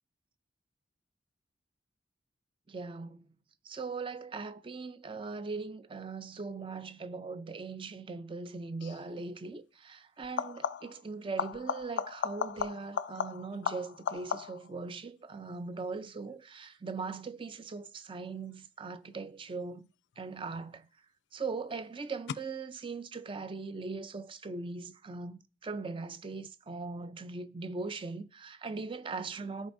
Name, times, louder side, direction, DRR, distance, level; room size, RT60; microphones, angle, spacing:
voice 1, 2.7-3.3 3.7-19.9 20.2-20.9 21.3-29.7, right 4 dB, 30° right, 0.4 m, -40 dB
sound 1, 8.8-9.1 10.2-11.0 11.4-14.7 20.2-20.8 22.3-22.4, left 7 dB, 70° left, 0.3 m, -36 dB
13.5 x 5.2 x 2.6 m
head